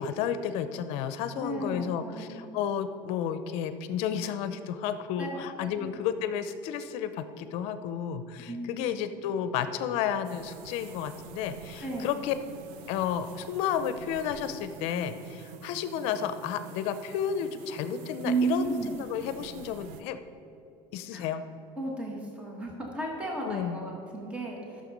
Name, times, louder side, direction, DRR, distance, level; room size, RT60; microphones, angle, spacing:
voice 1, 0.0-12.3 12.9-18.8 19.1-20.2 20.9-21.4 23.4-23.8, left 8 dB, 60° left, 11 dB, 0.6 m, -32 dB
voice 2, 1.4-2.5 5.2-5.4 5.6-5.9 8.5-8.8 11.8-12.2 18.2-18.9 21.1-21.3 21.8-24.8, right 3 dB, 10° right, -1 dB, 1.2 m, -33 dB
sound 1, 10.2-20.0, right 6 dB, 70° right, 0.7 m, -47 dB
12.0 x 6.7 x 5.3 m, 2.7 s
cardioid pair, 165°, 12 cm